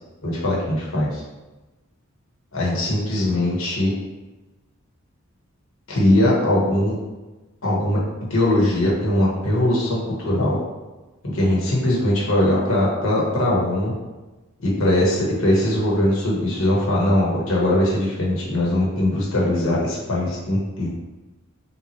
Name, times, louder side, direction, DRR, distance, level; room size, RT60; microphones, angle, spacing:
voice 1, 0.2-1.2 2.5-3.9 5.9-7.0 7.6-8.0 8.3-10.6 11.3-13.9 14.6-20.9, left 1 dB, 70° left, -4 dB, 1.2 m, -20 dB
3.5 x 3.0 x 4.2 m, 1.1 s
head